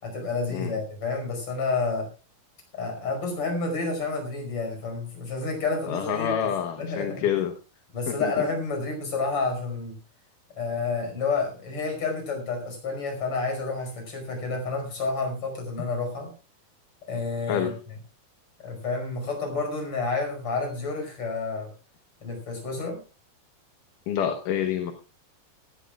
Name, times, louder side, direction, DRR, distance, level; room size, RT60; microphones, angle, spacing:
voice 1, 0.0-2.1 2.8-6.5 6.8-7.3 7.9-9.9 10.6-16.3 17.1-17.7 18.6-21.7 22.2-23.0, left 3 dB, 35° left, 3 dB, 6.1 m, -29 dB
voice 2, 5.9-7.5 8.1-8.5 17.5-17.7 24.1-24.9, left 9 dB, 65° left, 5 dB, 2.5 m, -27 dB
19.0 x 15.5 x 2.4 m, 0.34 s
omnidirectional pair, 4.4 m